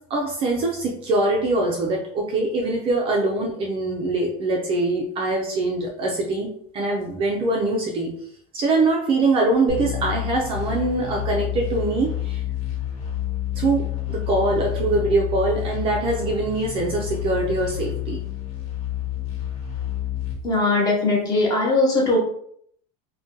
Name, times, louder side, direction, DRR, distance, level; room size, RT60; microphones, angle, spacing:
voice 1, 0.0-8.1 8.5-12.4 13.6-18.2, right 2 dB, 30° right, 0 dB, 0.4 m, -23 dB
sound 1, 9.7-20.3, left 12 dB, 45° left, 1.1 m, -29 dB
voice 2, 20.4-22.2, left 2 dB, 20° left, -2 dB, 0.7 m, -20 dB
2.6 x 2.2 x 3.6 m, 0.66 s
supercardioid pair, 165°, 20 cm